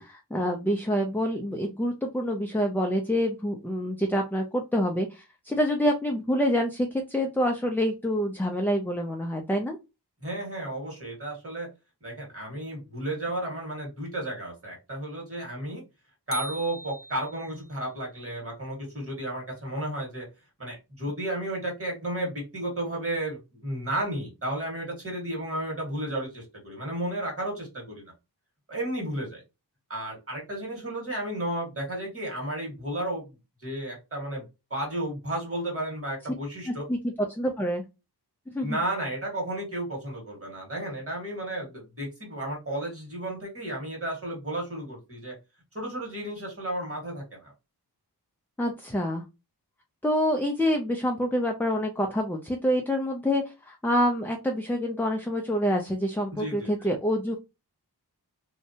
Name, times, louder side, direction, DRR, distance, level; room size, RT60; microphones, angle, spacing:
voice 1, 0.0-9.8 36.7-37.0 37.3-37.8 38.5-38.8 48.6-49.2 50.0-57.3, equal, 5° left, 2 dB, 0.4 m, -27 dB
voice 2, 10.2-11.7 12.0-15.8 16.3-20.3 20.6-28.1 28.7-29.4 29.9-33.3 33.6-34.4 34.7-36.8 38.6-45.3 45.7-47.5 56.3-56.9, right 1 dB, 35° right, 0 dB, 1.6 m, -33 dB
sound 1, 16.3-17.7, right 2 dB, 35° left, 0.8 m, -39 dB
2.7 x 2.1 x 2.7 m, 0.26 s
wide cardioid pair, 50°, 41 cm